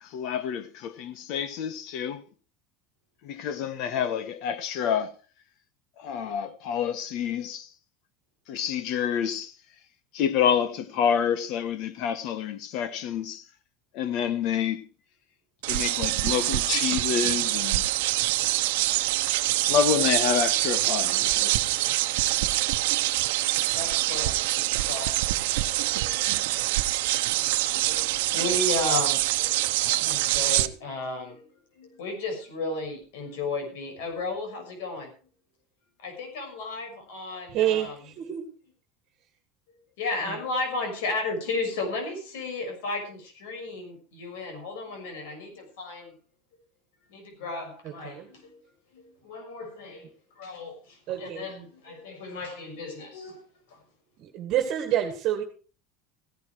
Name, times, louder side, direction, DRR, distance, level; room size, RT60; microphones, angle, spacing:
voice 1, 0.0-2.2 3.2-5.1 6.0-7.7 8.5-9.5 10.1-13.4 13.9-14.9 15.7-17.8 19.7-21.5, left 8 dB, 45° left, 1.4 m, -28 dB
sound 1, 15.6-30.7, right 18 dB, 80° right, 1.0 m, -25 dB
voice 2, 23.7-24.3 24.7-26.6 27.2-31.5 31.8-35.1 36.0-37.9 40.0-46.1 47.1-48.6 48.9-50.1 50.4-53.4 53.7-53.8, left 3 dB, 85° left, 6.4 m, -34 dB
voice 3, 37.5-38.5 40.2-40.4 47.8-48.3 51.1-51.5 54.2-55.4, right 11 dB, 35° right, 2.0 m, -28 dB
16.0 x 12.0 x 4.8 m
cardioid pair, 175°, 0 cm